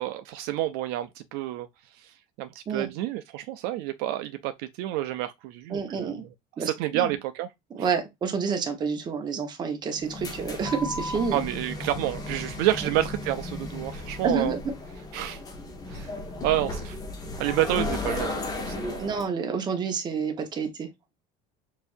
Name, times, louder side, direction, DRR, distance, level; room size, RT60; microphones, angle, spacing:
voice 1, 0.0-6.2 6.6-7.5 7.8-7.9 11.3-14.6 15.1-15.4 15.9-16.1 16.4-17.0 17.4-19.1, right 13 dB, 65° right, 0.4 m, -29 dB
voice 2, 5.7-6.2 6.6-7.1 7.7-11.4 14.2-14.6 19.0-20.9, right 5 dB, 25° right, 1.1 m, -29 dB
sound 1, 10.0-19.3, left 2 dB, 20° left, 0.9 m, -35 dB
6.8 x 2.6 x 2.5 m
cardioid pair, 160°, 18 cm